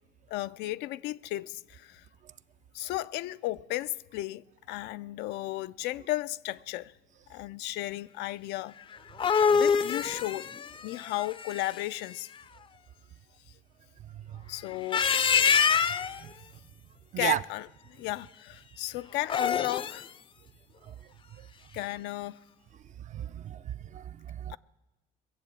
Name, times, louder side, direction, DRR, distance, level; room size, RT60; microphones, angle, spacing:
voice 1, 0.3-2.0 2.7-6.9 7.3-8.7 9.5-10.5 10.8-12.3 14.5-15.1 17.2-17.7 18.0-20.1 21.7-22.4 24.5-24.6, left 17 dB, 90° left, 0.4 m, -34 dB
sound 1, 8.9-12.0 14.7-16.2 19.2-20.1, left 6 dB, 30° left, 0.4 m, -26 dB
voice 2, 14.1-14.4 16.2-16.3 17.1-17.4 23.1-24.5, right 11 dB, 45° right, 0.4 m, -34 dB
22.0 x 7.5 x 8.5 m
cardioid pair, 110°, 17 cm